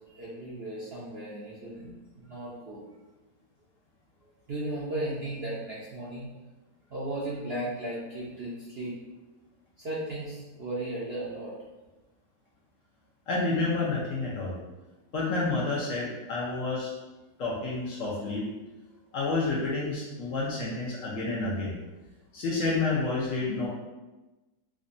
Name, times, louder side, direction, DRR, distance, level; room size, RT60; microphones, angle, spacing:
voice 1, 0.2-1.9 2.2-2.8 4.5-6.3 6.9-8.9 9.8-11.5, right 1 dB, 55° right, -7 dB, 0.7 m, -35 dB
voice 2, 13.3-14.5 15.1-16.9 17.4-18.4 19.1-21.7 22.3-23.7, left 3 dB, 65° left, -4 dB, 0.9 m, -29 dB
4.9 x 2.2 x 2.5 m, 1.1 s
omnidirectional pair, 1.7 m